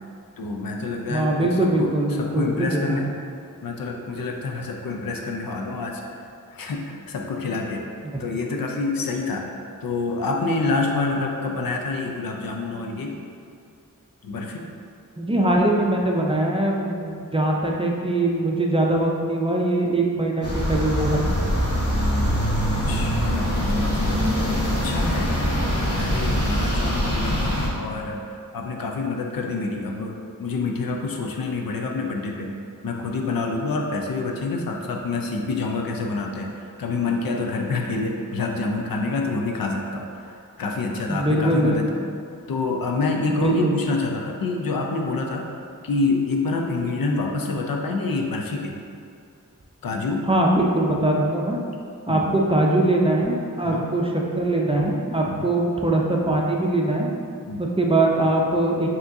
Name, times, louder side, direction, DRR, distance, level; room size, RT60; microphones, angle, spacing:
voice 1, 0.4-3.1 3.6-6.0 6.5-7.8 8.2-9.5 9.8-13.1 14.2-14.6 22.7-24.2 24.6-32.5 32.8-41.9 42.5-45.4 45.8-48.7 49.8-50.3 52.1-52.4 53.6-53.9 55.3-55.5 57.5-57.7, left 3 dB, 85° left, 1 dB, 0.5 m, -27 dB
voice 2, 1.1-3.1 15.2-21.3 41.1-42.0 43.3-43.7 50.3-51.6 52.1-57.1 57.6-58.9, right 1 dB, 15° right, -1 dB, 0.4 m, -22 dB
sound 1, 20.4-27.7, equal, 45° left, 1.0 m, -23 dB
5.9 x 2.8 x 2.6 m, 2.4 s
wide cardioid pair, 90°, 34 cm